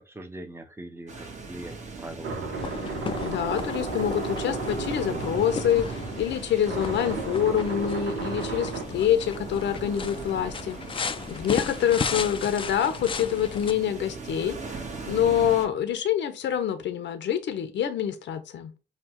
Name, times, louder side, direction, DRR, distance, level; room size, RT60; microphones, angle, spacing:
voice 1, 0.0-2.4 11.8-12.2, right 1 dB, 10° right, 7 dB, 0.8 m, -42 dB
sound 1, 1.1-15.7, right 4 dB, 35° right, 1.3 m, -40 dB
sound 2, 2.2-8.8, right 4 dB, 70° right, 1.1 m, -33 dB
sound 3, 2.5-13.7, left 5 dB, 25° left, 0.4 m, -36 dB
voice 2, 3.2-10.8 11.3-18.7, left 9 dB, 65° left, 10 dB, 0.7 m, -26 dB
5.6 x 2.3 x 3.0 m, 0.29 s
cardioid pair, 90°, 20 cm